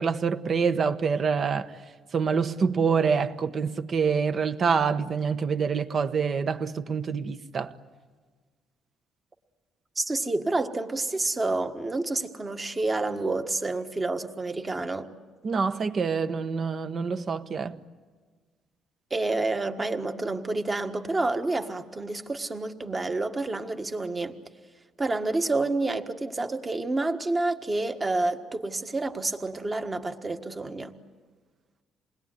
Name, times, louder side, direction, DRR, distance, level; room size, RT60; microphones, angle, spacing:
voice 1, 0.0-1.7 2.1-7.7 15.4-17.8, right 5 dB, 40° right, 1.1 m, -26 dB
voice 2, 9.9-15.1 19.1-24.3 25.0-30.9, right 2 dB, 20° right, 1.5 m, -29 dB
28.0 x 20.5 x 9.8 m
cardioid pair, 125°, 0 cm